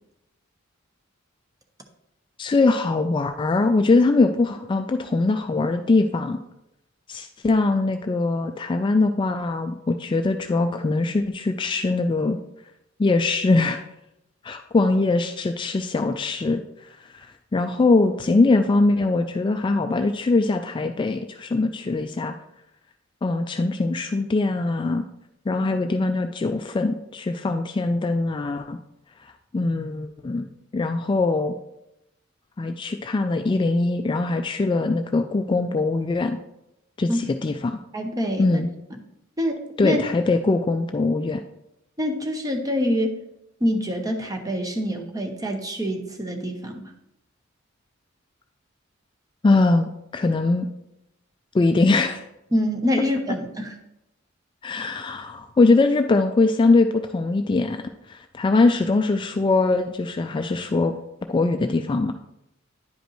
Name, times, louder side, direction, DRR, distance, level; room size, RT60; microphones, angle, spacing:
voice 1, 2.4-6.4 7.1-12.4 13.0-13.8 14.4-16.6 17.1-17.3 17.5-22.3 23.2-25.0 25.5-28.8 29.5-30.5 30.7-31.6 32.6-36.4 37.0-37.8 38.4-38.7 39.8-41.4 49.4-50.7 51.5-52.2 54.6-57.8 58.1-60.9 61.3-62.1, left 3 dB, 25° left, 6 dB, 0.3 m, -22 dB
voice 2, 37.9-38.6 38.9-39.0 39.4-40.0 42.0-43.2 43.6-46.9 52.5-53.7, equal, 20° right, 4 dB, 0.8 m, -25 dB
9.9 x 5.1 x 3.1 m, 0.85 s
head